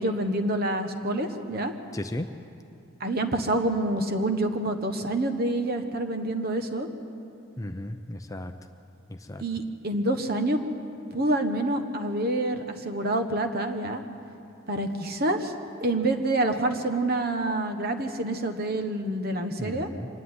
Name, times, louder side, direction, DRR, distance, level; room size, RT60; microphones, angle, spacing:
voice 1, 0.0-1.7 3.0-6.9 9.4-10.6 11.1-14.0 14.7-15.5 15.8-19.9, right 1 dB, 45° right, 6 dB, 1.2 m, -27 dB
voice 2, 1.9-2.3 7.6-8.5 9.2-9.4 19.6-20.1, left 1 dB, 15° left, 7 dB, 0.5 m, -35 dB
25.0 x 11.0 x 9.6 m, 2.7 s
head